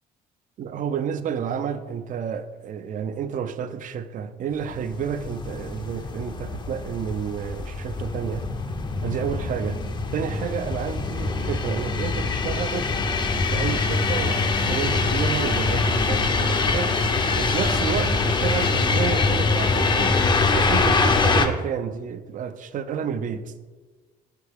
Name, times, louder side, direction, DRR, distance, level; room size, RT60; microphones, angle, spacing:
voice 1, 0.6-8.4 9.0-9.8 10.1-12.9 13.5-16.9 17.3-20.2 20.5-23.5, right 7 dB, 50° right, 0.5 m, -30 dB
sound 1, 4.7-21.5, left 3 dB, 25° left, 0.6 m, -24 dB
8.2 x 5.6 x 3.5 m
cardioid pair, 110°, 17 cm